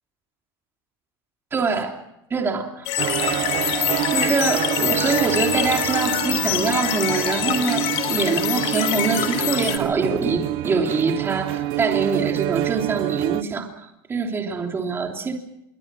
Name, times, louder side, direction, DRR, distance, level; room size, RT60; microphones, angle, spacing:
voice 1, 1.5-2.0 2.3-2.8 4.1-15.3, right 4 dB, 20° right, 2 dB, 3.2 m, -24 dB
sound 1, 2.9-9.8, left 13 dB, 55° left, 3.4 m, -25 dB
sound 2, 3.0-13.4, right 17 dB, 50° right, 0.8 m, -26 dB
sound 3, 8.5-10.3 10.6-12.2 12.6-13.0, left 3 dB, 10° left, 6.8 m, -46 dB
26.5 x 23.5 x 6.2 m, 0.87 s
supercardioid pair, 145°, 12 cm